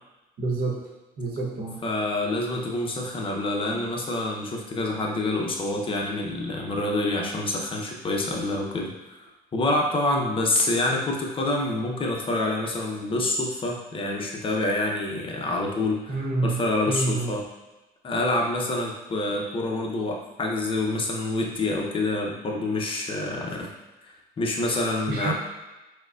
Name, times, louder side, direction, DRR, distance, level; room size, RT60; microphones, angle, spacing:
voice 1, 0.4-0.8 1.2-1.8 16.1-16.6 16.9-17.3 25.1-25.3, right 3 dB, 60° right, -2 dB, 0.9 m, -27 dB
voice 2, 1.8-9.3 9.5-17.4 18.0-23.7 24.4-25.3, left 2 dB, 30° left, 0 dB, 0.6 m, -27 dB
4.8 x 2.1 x 2.3 m, 1.1 s
cardioid pair, 110°, 17 cm